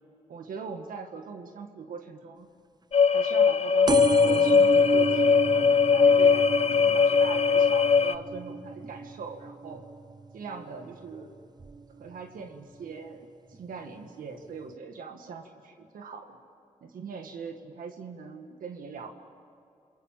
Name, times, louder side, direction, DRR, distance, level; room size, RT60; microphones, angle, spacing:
voice 1, 0.3-2.5 3.1-9.8 10.3-11.3 12.0-13.2 13.6-16.4 16.8-19.1, right 5 dB, 85° right, 4 dB, 1.8 m, -41 dB
sound 1, 2.9-8.2, left 5 dB, 50° left, 0.9 m, -20 dB
sound 2, 3.9-11.1 11.6-12.0 12.9-13.0 13.2-13.3 13.5-13.6, right 3 dB, 30° right, 0.6 m, -33 dB
29.0 x 22.0 x 7.4 m, 2.6 s
cardioid pair, 60°, 14 cm